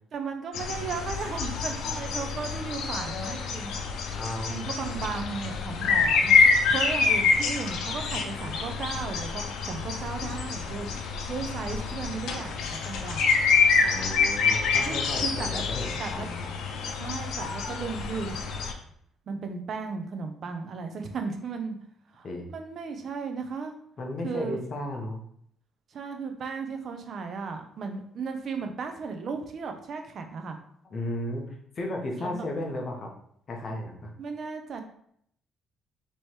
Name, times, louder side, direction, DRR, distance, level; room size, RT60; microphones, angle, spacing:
voice 1, 0.1-3.8 4.5-10.9 11.3-13.5 14.9-15.6 16.0-16.3 17.0-18.4 19.3-21.8 22.1-23.7 24.2-24.6 25.9-30.6 32.2-32.4 34.2-34.8, right 5 dB, 40° right, 5 dB, 0.6 m, -35 dB
sound 1, 0.5-18.7, left 5 dB, 75° left, 0.6 m, -27 dB
voice 2, 4.1-4.8 13.8-16.5 22.2-22.5 24.0-25.2 30.8-33.1 33.5-34.1, left 1 dB, 30° left, 1 dB, 0.9 m, -34 dB
3.3 x 3.0 x 4.4 m, 0.66 s
cardioid pair, 160°, 0 cm